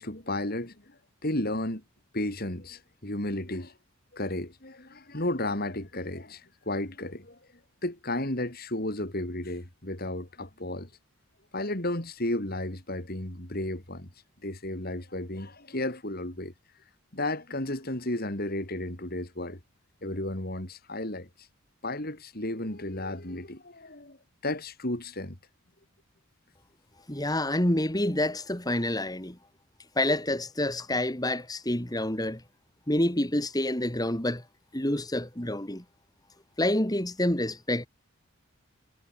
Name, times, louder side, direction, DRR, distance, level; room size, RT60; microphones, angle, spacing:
voice 1, 0.0-1.8 2.1-3.7 4.1-7.4 7.8-10.9 11.5-14.1 14.4-16.5 17.1-19.6 20.0-21.3 21.8-24.2 24.4-25.4, left 1 dB, 45° left, 3.7 m, -33 dB
voice 2, 27.1-29.4 30.0-32.4 32.9-34.4 34.7-35.8 36.6-37.9, left 1 dB, 15° left, 2.4 m, -28 dB
head